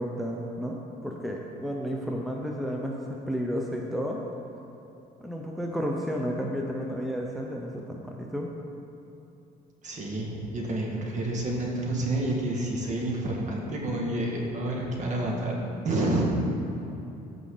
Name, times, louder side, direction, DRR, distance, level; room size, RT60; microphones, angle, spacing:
voice 1, 0.0-4.2 5.2-8.5, equal, ahead, -1 dB, 0.7 m, -32 dB
voice 2, 9.8-16.3, right 1 dB, 45° right, -2 dB, 1.9 m, -29 dB
14.5 x 5.2 x 3.9 m, 2.9 s
cardioid pair, 110°, 17 cm